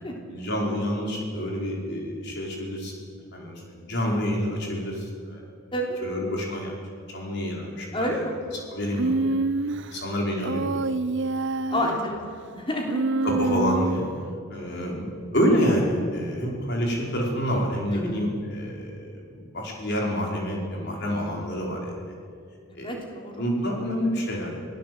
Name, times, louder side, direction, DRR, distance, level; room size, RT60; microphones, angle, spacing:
voice 1, 0.3-2.9 3.3-5.5 6.0-6.7 7.1-8.2 8.7-9.1 9.9-10.8 11.7-11.9 13.2-14.0 14.5-22.1 22.7-22.9 23.4-24.7, equal, 50° left, -1 dB, 5.0 m, -28 dB
voice 2, 7.9-8.4 11.7-12.2 12.5-13.0 17.9-18.3 22.7-23.4, equal, 25° left, 0 dB, 3.6 m, -29 dB
Human voice, 8.9-9.9 10.4-12.0 12.9-14.1, right 3 dB, 55° right, 0.5 m, -26 dB
26.0 x 18.0 x 7.9 m, 2.3 s
head